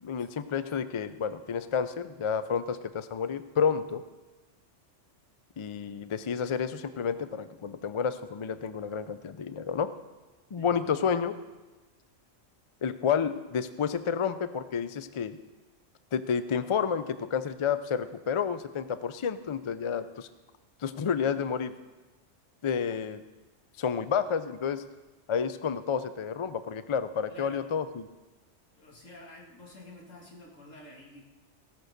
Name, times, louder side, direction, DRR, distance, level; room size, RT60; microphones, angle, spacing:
voice 1, 0.0-4.0 5.6-9.9 10.5-11.3 12.8-15.4 16.1-20.3 20.8-21.7 22.6-23.2 23.8-24.8 25.3-28.0, left 7 dB, 50° left, 12 dB, 0.3 m, -30 dB
voice 2, 27.3-27.7 28.7-31.2, left 1 dB, 85° left, -1 dB, 2.4 m, -49 dB
16.5 x 6.1 x 6.6 m, 1.2 s
omnidirectional pair, 1.3 m